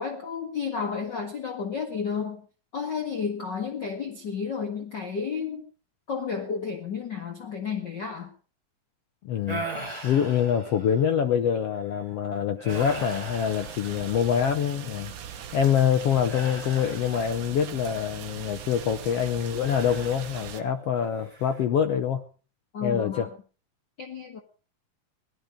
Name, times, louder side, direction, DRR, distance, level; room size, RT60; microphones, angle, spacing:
voice 1, 0.0-2.5 2.7-5.6 6.1-8.3 22.7-23.3 24.0-24.4, left 6 dB, 40° left, 3 dB, 1.9 m, -32 dB
voice 2, 9.2-9.7 10.0-22.2 22.8-23.3, left 8 dB, 70° left, 8 dB, 1.5 m, -25 dB
sound 1, 9.5-11.2 11.7-12.0 12.6-14.5 16.3-17.6 19.6-20.8 21.2-21.6, right 2 dB, 10° right, 2.8 m, -39 dB
sound 2, 12.7-20.6, right 9 dB, 70° right, 2.8 m, -41 dB
19.0 x 12.5 x 5.2 m, 0.38 s
omnidirectional pair, 3.9 m